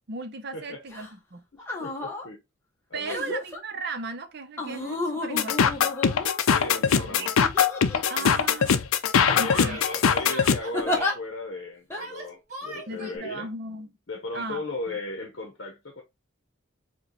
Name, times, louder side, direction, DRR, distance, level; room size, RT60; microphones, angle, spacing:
voice 1, 0.1-1.4 2.9-5.9 6.9-7.3 8.1-8.7 9.4-9.8 12.9-13.9 14.3-14.6, right 3 dB, 50° right, 0.6 m, -36 dB
sound 1, 0.9-1.1 1.6-2.3 3.1-3.6 4.6-6.6 7.4-8.2 8.6-8.8 9.2-9.8 10.7-11.1 11.9-12.0, left 2 dB, 10° left, 0.8 m, -31 dB
voice 2, 1.5-2.4 2.9-3.4 6.5-7.3 8.2-8.3 9.3-13.5 14.1-16.0, left 2 dB, 60° left, 0.8 m, -36 dB
sound 2, 5.4-10.6, left 7 dB, 85° left, 0.4 m, -22 dB
Yell, 7.9-8.2 9.5-11.2 11.9-13.2, right 2 dB, 35° right, 1.5 m, -40 dB
4.8 x 2.2 x 3.0 m
head